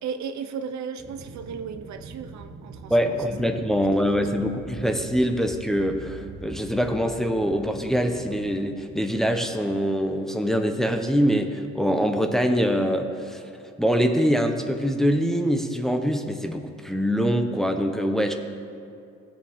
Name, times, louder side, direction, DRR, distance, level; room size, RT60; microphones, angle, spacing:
voice 1, 0.0-3.1 3.4-3.5 4.0-4.5, right 6 dB, 65° right, 9 dB, 0.7 m, -35 dB
Aircraft, 1.0-10.4, right 3 dB, 35° right, 1.1 m, -43 dB
voice 2, 2.9-18.3, equal, ahead, 5 dB, 0.9 m, -24 dB
17.0 x 7.3 x 3.6 m, 2.5 s
cardioid pair, 90°, 30 cm